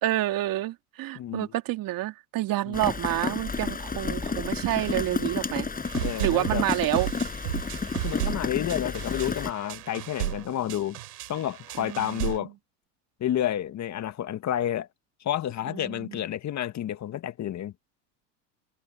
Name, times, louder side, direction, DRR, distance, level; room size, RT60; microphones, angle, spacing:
voice 1, 0.0-5.7 6.2-7.1 11.8-12.5 15.7-16.2, right 15 dB, 45° right, 2.5 m, -28 dB
voice 2, 1.2-1.5 2.7-2.8 6.0-6.7 8.0-11.0 11.3-12.5 13.2-14.9 15.2-17.7, left 11 dB, 35° left, 1.7 m, -30 dB
Rain, 2.7-9.5, left 4 dB, 20° left, 7.3 m, -31 dB
sound 1, 5.8-12.4, right 16 dB, 75° right, 7.9 m, -34 dB
hypercardioid pair, 85°, 47 cm